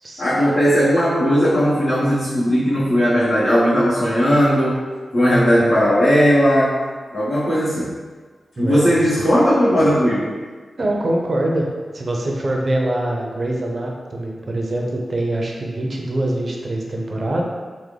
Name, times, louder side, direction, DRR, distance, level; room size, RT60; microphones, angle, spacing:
voice 1, 0.2-4.8 5.1-6.8 7.1-7.9 8.6-10.3, equal, 80° left, -14 dB, 1.1 m, -17 dB
voice 2, 5.3-5.9 8.6-8.9 10.8-17.5, right 1 dB, 40° right, -1 dB, 0.5 m, -24 dB
3.5 x 2.1 x 3.3 m, 1.4 s
wide cardioid pair, 125°, 0 cm